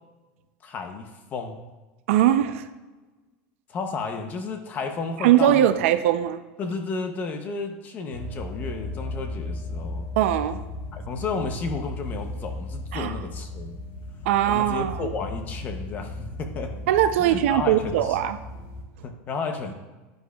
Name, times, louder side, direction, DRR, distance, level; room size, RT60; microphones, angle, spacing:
voice 1, 0.6-1.6 3.7-5.8 6.6-10.1 10.9-13.8 14.5-16.8 17.2-18.2 19.0-19.7, left 4 dB, 25° left, 6 dB, 0.7 m, -32 dB
voice 2, 2.1-2.7 5.2-6.4 10.2-10.6 12.9-13.1 14.3-15.1 16.9-18.4, right 12 dB, 90° right, 10 dB, 0.5 m, -21 dB
sound 1, 8.1-18.8, left 2 dB, 85° left, 3.0 m, -36 dB
10.5 x 9.9 x 2.3 m, 1.2 s
cardioid pair, 175°, 7 cm